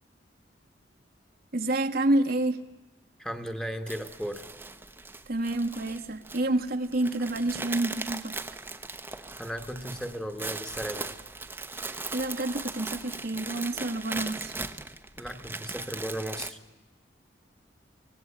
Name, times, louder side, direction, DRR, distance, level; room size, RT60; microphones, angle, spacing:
voice 1, 1.5-2.6 5.3-8.4 11.9-14.5, right 2 dB, 55° right, 7 dB, 1.2 m, -28 dB
voice 2, 3.2-4.5 9.1-11.1 15.2-16.6, equal, 5° left, 7 dB, 1.3 m, -36 dB
sound 1, 3.9-16.5, right 3 dB, 10° right, 0.9 m, -39 dB
25.0 x 18.5 x 8.6 m, 1.2 s
head